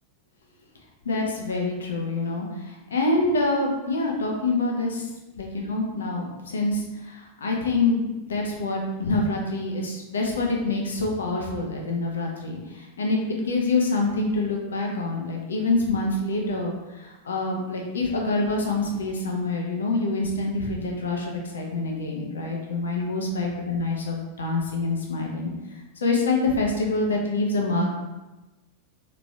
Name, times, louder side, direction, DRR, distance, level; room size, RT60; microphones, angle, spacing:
voice 1, 1.0-5.1 5.4-27.9, left 2 dB, 70° left, 0 dB, 0.7 m, -26 dB
3.9 x 3.1 x 2.3 m, 1.1 s
figure-of-eight pair, 90°, 0 cm